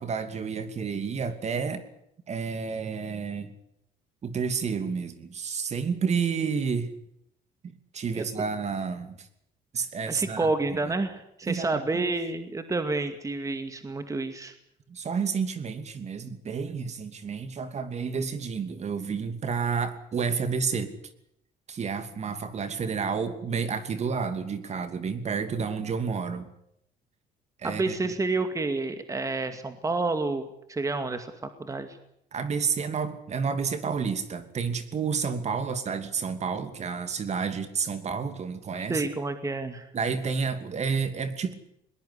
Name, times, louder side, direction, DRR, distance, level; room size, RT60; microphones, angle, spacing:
voice 1, 0.0-1.8 2.3-3.5 4.2-6.9 7.6-9.3 9.7-10.5 10.8-10.9 11.4-12.1 14.9-20.9 21.7-26.5 27.6-28.1 32.3-39.0 39.9-41.5, right 5 dB, 40° right, 10 dB, 2.8 m, -30 dB
voice 2, 10.1-14.5 27.6-30.4 30.7-32.0 38.9-39.9, right 3 dB, 20° right, 8 dB, 2.2 m, -29 dB
21.0 x 20.0 x 8.4 m, 0.77 s
cardioid pair, 110°, 17 cm